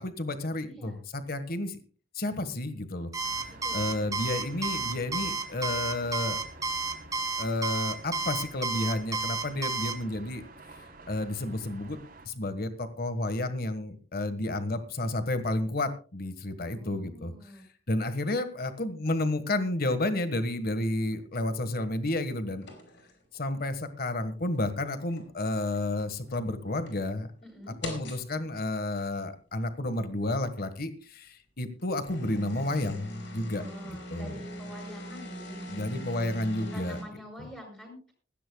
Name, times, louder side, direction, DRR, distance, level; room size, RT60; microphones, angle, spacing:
voice 1, 0.0-1.8 2.1-3.1 3.4-6.4 7.4-10.4 11.1-12.0 12.2-17.3 17.9-22.7 23.3-27.3 27.8-34.4 35.7-37.0 37.4-37.5, left 1 dB, 55° left, 10 dB, 1.5 m, -31 dB
voice 2, 0.6-1.0 3.5-4.2 16.6-17.6 27.4-27.8 33.5-36.0 36.6-38.1, equal, 5° left, 1 dB, 7.3 m, -47 dB
Alarm, 3.1-9.9, right 3 dB, 20° right, 1.9 m, -31 dB
sound 1, 3.2-12.3, right 2 dB, 50° right, 3.6 m, -50 dB
sound 2, 20.8-21.2 22.6-23.8 24.2-24.3 24.9-25.4 25.7-26.3 26.9-27.0 27.8-28.3 29.0-29.1 30.6-30.7 31.8-37.0, equal, 75° left, 5.5 m, -42 dB
20.5 x 15.5 x 2.3 m, 0.37 s
head